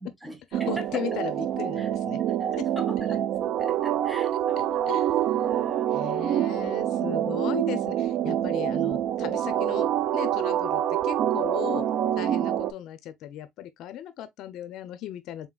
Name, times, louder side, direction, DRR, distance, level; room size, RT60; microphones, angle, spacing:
voice 1, 0.0-1.2 1.8-1.9 2.4-6.2 7.0-7.4, equal, ahead, 0.9 m, -42 dB
voice 2, 0.5-2.2 2.5-2.6 4.9-5.1 5.9-11.8 12.2-15.5, left 11 dB, 60° left, 0.6 m, -36 dB
sound 1, 0.5-12.7, right 11 dB, 55° right, 0.4 m, -26 dB
4.1 x 3.7 x 2.2 m
supercardioid pair, 105°, 0 cm